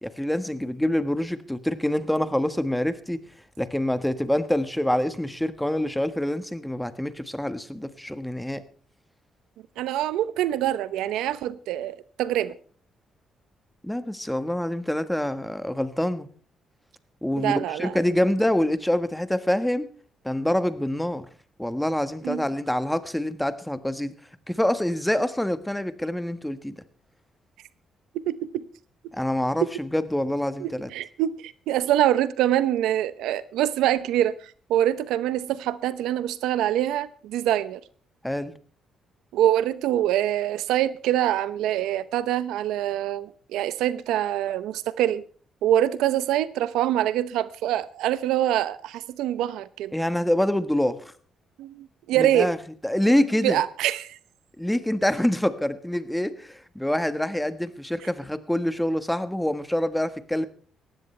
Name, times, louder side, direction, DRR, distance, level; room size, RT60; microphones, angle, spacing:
voice 1, 0.0-3.2 3.6-8.6 13.8-16.3 17.2-19.9 20.2-21.2 21.6-24.1 24.5-26.7 29.1-30.9 38.2-38.5 49.9-51.0 52.1-52.6 52.8-53.6 54.6-60.5, left 1 dB, 5° left, 1.4 m, -26 dB
voice 2, 9.8-12.5 17.4-18.1 22.2-22.4 28.3-28.6 29.6-29.7 30.6-37.8 39.3-45.2 45.6-49.9 51.6-52.5 53.1-54.2, right 12 dB, 90° right, 0.8 m, -25 dB
18.5 x 15.0 x 3.3 m
cardioid pair, 90°, 0 cm